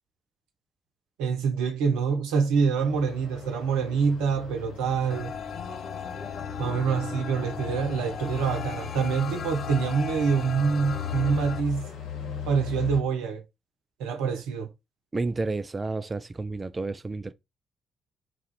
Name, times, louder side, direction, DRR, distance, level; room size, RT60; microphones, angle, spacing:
voice 1, 1.2-5.3 6.6-11.9 12.5-13.4 14.0-14.7, right 6 dB, 75° right, 0.8 m, -26 dB
sound 1, 2.8-13.0, left 8 dB, 70° left, 0.9 m, -38 dB
sound 2, 5.1-11.6, left 6 dB, 50° left, 0.4 m, -37 dB
voice 2, 15.1-17.3, right 3 dB, 30° right, 0.4 m, -31 dB
4.1 x 2.4 x 4.6 m
figure-of-eight pair, 40°, 0 cm